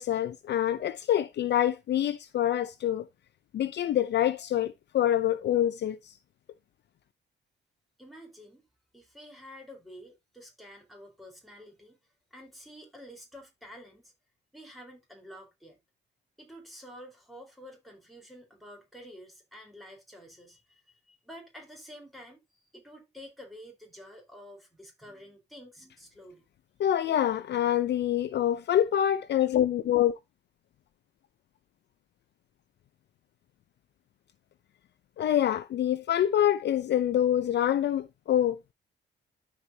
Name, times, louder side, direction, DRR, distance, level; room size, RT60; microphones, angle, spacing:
voice 1, 0.0-3.0 3.5-6.1 26.8-30.1 35.2-38.6, left 11 dB, 60° left, 0.6 m, -26 dB
voice 2, 8.0-8.7 8.9-12.0 12.3-14.1 14.5-15.8 16.4-26.4, equal, ahead, 4.3 m, -49 dB
12.5 x 5.0 x 2.8 m
cardioid pair, 90°, 20 cm